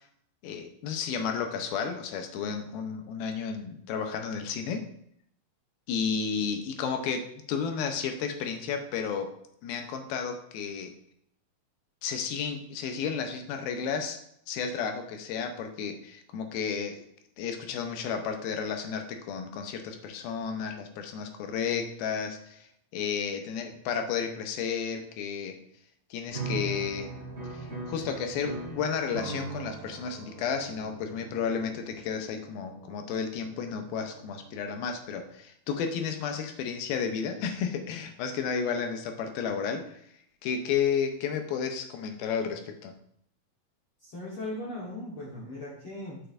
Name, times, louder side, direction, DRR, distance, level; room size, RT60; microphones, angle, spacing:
voice 1, 0.4-4.8 5.9-9.3 9.6-10.9 12.0-14.2 14.5-17.0 17.4-25.6 26.1-27.1 27.5-40.0 40.4-42.9, left 6 dB, 80° left, 5 dB, 2.6 m, -32 dB
sound 1, 26.3-34.6, right 3 dB, 30° right, 1.4 m, -40 dB
voice 2, 44.0-46.2, left 1 dB, 60° left, -5 dB, 1.4 m, -38 dB
8.8 x 6.9 x 2.6 m, 0.71 s
omnidirectional pair, 4.4 m